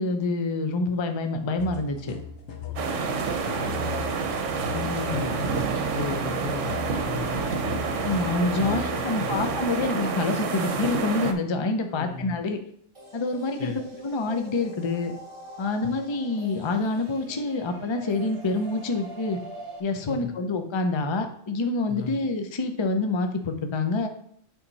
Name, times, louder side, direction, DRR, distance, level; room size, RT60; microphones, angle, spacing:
voice 1, 0.0-2.2 4.7-5.2 8.0-12.6 13.1-15.1 15.6-19.4 19.8-24.1, left 3 dB, 30° left, 6 dB, 0.6 m, -27 dB
sound 1, 1.6-9.6, left 6 dB, 80° left, 1.3 m, -39 dB
voice 2, 2.6-3.0 3.5-4.8 5.1-8.1 8.6-9.4 11.8-12.4 13.6-13.8 15.8-16.0 20.0-20.4 21.9-22.2, left 7 dB, 65° left, 8 dB, 0.8 m, -38 dB
sound 2, 2.8-11.3, right 5 dB, 75° right, 1.1 m, -28 dB
sound 3, 12.9-19.8, right 1 dB, 25° right, 0.9 m, -44 dB
8.5 x 3.8 x 4.0 m, 0.63 s
omnidirectional pair, 1.3 m